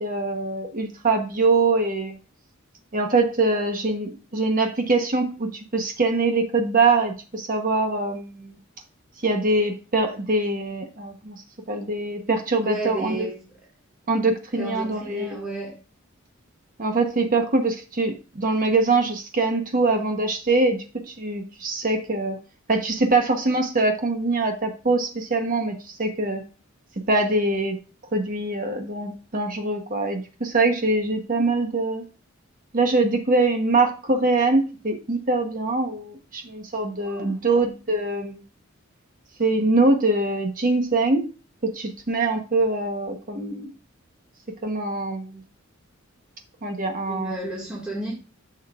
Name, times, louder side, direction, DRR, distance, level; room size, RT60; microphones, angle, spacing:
voice 1, 0.0-2.2 2.9-8.6 9.2-11.4 11.7-13.1 14.1-15.4 16.8-22.4 22.7-26.4 27.1-27.8 28.1-32.0 32.7-38.4 39.4-41.3 41.6-43.7 44.6-45.4 46.6-47.4, right 3 dB, 40° right, 1.0 m, -23 dB
voice 2, 12.6-13.5 14.5-15.8 37.0-37.5 47.1-48.1, right 2 dB, 5° right, 1.9 m, -32 dB
11.0 x 6.7 x 2.4 m
head